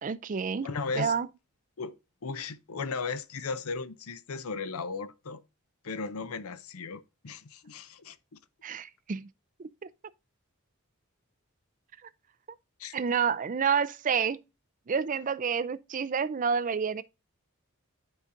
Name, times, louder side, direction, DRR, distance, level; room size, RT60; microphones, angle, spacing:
voice 1, 0.0-0.7 1.0-1.3 8.6-9.3 9.6-9.7 12.9-14.4 14.9-17.0, right 6 dB, 35° right, 0.4 m, -29 dB
voice 2, 0.6-1.1 1.8-1.9 2.2-5.4 5.8-8.4 12.8-13.0, left 4 dB, 75° left, 0.6 m, -36 dB
9.8 x 4.8 x 2.6 m
head